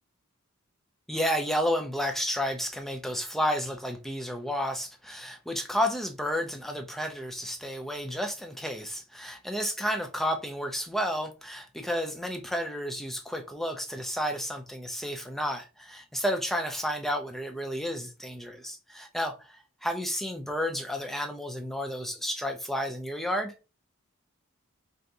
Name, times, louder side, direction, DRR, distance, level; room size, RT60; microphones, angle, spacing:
voice 1, 1.1-23.5, equal, ahead, 0.3 m, -31 dB
3.4 x 2.6 x 2.7 m
head